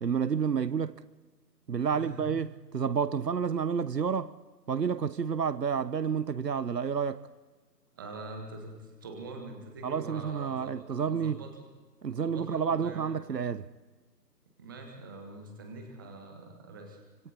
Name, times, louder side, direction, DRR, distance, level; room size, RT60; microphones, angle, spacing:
voice 1, 0.0-1.0 1.7-4.3 4.7-7.2 9.8-11.4 12.0-13.6, right 6 dB, 75° right, 0.9 m, -30 dB
voice 2, 1.9-2.3 8.0-11.7 12.1-13.3 14.6-17.0, right 3 dB, 15° right, 1.5 m, -44 dB
25.5 x 24.5 x 4.2 m
figure-of-eight pair, 160°, 49 cm